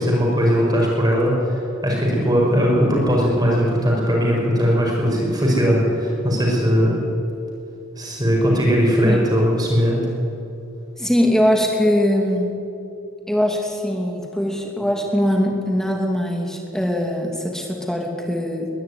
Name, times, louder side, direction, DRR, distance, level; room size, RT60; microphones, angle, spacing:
voice 1, 0.0-7.1 8.0-10.0, equal, 20° right, -2 dB, 5.5 m, -19 dB
voice 2, 11.0-12.5 13.3-18.7, equal, ahead, 1 dB, 2.7 m, -21 dB
21.5 x 13.0 x 9.7 m, 2.7 s
head